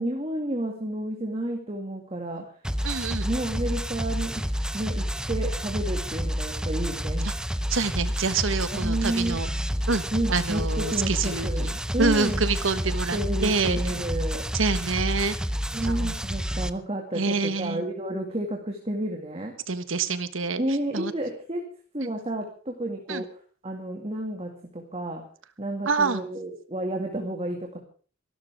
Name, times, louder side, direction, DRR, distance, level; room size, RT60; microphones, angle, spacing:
voice 1, 0.0-2.4 3.2-4.5 4.7-7.3 8.7-9.4 10.1-11.7 11.9-12.4 13.1-14.4 15.7-19.5 20.6-21.7 21.9-23.3 23.6-25.2 25.6-27.8, right 1 dB, 30° right, 2 dB, 2.2 m, -31 dB
sound 1, 2.6-16.7, equal, 5° right, 0.6 m, -29 dB
voice 2, 2.8-3.3 7.2-7.3 7.7-9.5 9.9-13.8 14.5-15.3 15.8-16.1 17.1-17.8 19.7-20.6 20.9-21.1 22.0-22.1 23.1-23.2 25.8-26.2, right 4 dB, 85° right, 12 dB, 1.4 m, -27 dB
25.5 x 12.5 x 3.6 m, 0.41 s
head